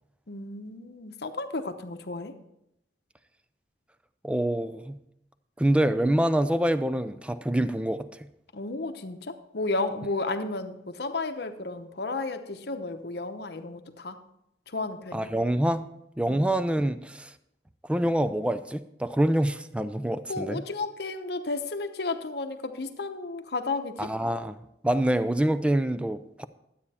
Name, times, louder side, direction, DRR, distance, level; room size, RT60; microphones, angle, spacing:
voice 1, 0.3-2.3 8.5-14.2 14.7-15.3 16.3-16.5 20.3-24.1, left 3 dB, 65° left, 7 dB, 0.9 m, -33 dB
voice 2, 4.2-5.0 5.6-8.3 15.1-15.8 16.2-17.3 17.8-20.6 24.0-26.4, right 1 dB, 5° right, 12 dB, 0.4 m, -26 dB
12.0 x 8.5 x 4.2 m, 0.81 s
head